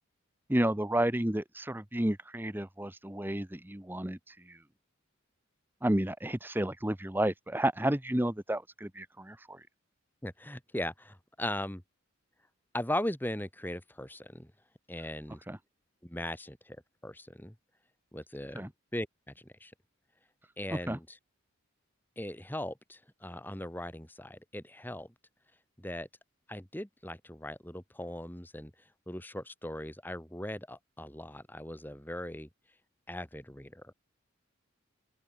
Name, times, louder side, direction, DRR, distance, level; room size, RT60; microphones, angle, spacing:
voice 1, 0.5-4.6 5.8-9.7 15.5-15.6 18.5-18.7 20.9-21.0, right 1 dB, 10° right, 0.9 m, -31 dB
voice 2, 10.2-11.8 12.7-14.5 14.9-15.4 16.0-16.8 17.0-17.5 18.1-19.7 20.6-21.2 22.2-25.1 25.8-26.1 26.5-32.5 33.1-33.9, left 1 dB, 10° left, 2.4 m, -39 dB
open air
head